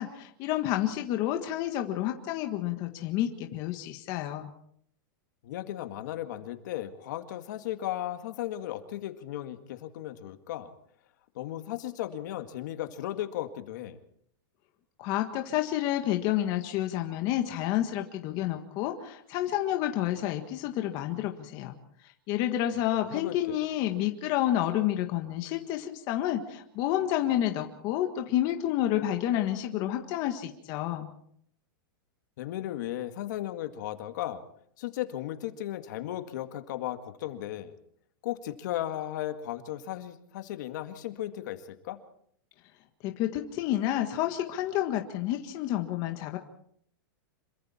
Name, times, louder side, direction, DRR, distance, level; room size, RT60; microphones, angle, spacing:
voice 1, 0.0-4.5 15.0-21.7 22.3-31.1 43.0-46.4, left 12 dB, 35° left, 5 dB, 1.6 m, -29 dB
voice 2, 5.4-10.7 11.4-14.0 23.0-23.3 32.4-34.4 34.8-37.7 38.2-42.0, left 13 dB, 55° left, 8 dB, 2.0 m, -36 dB
27.0 x 23.5 x 4.4 m, 0.66 s
supercardioid pair, 165°, 12 cm